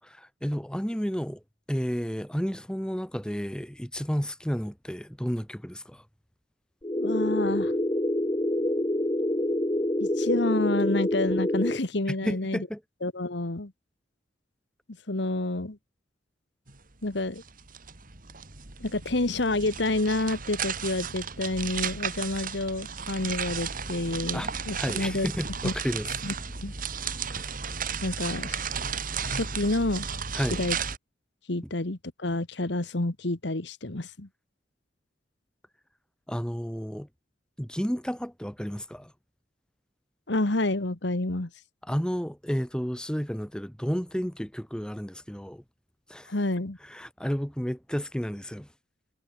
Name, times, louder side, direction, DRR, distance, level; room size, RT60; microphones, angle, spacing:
voice 1, 0.0-1.4 1.7-6.0 12.1-12.8 24.3-24.5 24.8-26.1 27.3-27.5 30.3-30.6 36.3-37.1 37.6-39.1 41.8-45.6 46.1-46.3 46.8-48.7, equal, 5° left, 1.6 m, -32 dB
sound 1, 6.8-11.8, left 1 dB, 20° left, 1.3 m, -27 dB
voice 2, 7.0-7.7 10.0-12.7 13.0-13.7 15.1-15.8 17.0-17.4 18.8-25.3 25.6-25.7 26.2-26.3 26.6-26.7 28.0-28.6 29.3-30.1 30.5-30.8 31.5-34.3 40.3-41.5 46.3-46.8, left 2 dB, 65° left, 1.6 m, -29 dB
sound 2, 16.7-16.8 17.1-31.0, right 6 dB, 50° right, 3.0 m, -34 dB
head